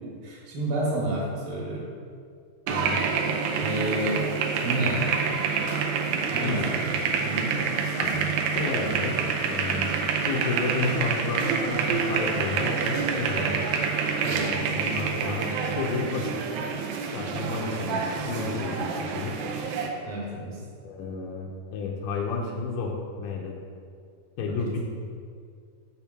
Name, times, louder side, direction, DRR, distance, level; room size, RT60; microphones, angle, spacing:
voice 1, 0.0-1.9 3.6-4.2 4.6-5.0 6.3-6.8 7.2-7.6 14.2-14.7 20.0-20.6 24.4-24.8, right 1 dB, 70° right, -4 dB, 3.1 m, -30 dB
voice 2, 2.7-3.0 6.4-6.7 8.0-8.3 8.6-9.2 9.4-10.0 10.3-13.6 14.7-16.4 17.1-19.4 20.8-23.6 24.4-24.8, left 4 dB, 90° left, -1 dB, 2.4 m, -31 dB
sound 1, 2.7-19.9, right 5 dB, 90° right, 2.4 m, -27 dB
6.9 x 3.5 x 6.0 m, 2.2 s
omnidirectional pair, 4.2 m